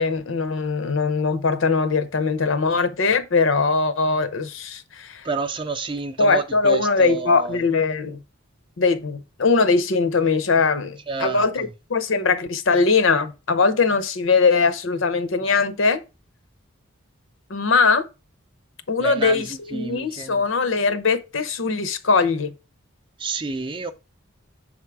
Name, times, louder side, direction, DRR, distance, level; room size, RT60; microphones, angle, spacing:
voice 1, 0.0-5.3 6.2-8.2 8.8-16.0 17.5-18.0 18.9-22.5, left 4 dB, 70° left, 0.7 m, -21 dB
voice 2, 5.2-7.6 11.1-11.7 19.0-19.4 19.7-20.4 23.2-23.9, right 4 dB, 25° right, 0.5 m, -29 dB
6.4 x 3.6 x 4.7 m
head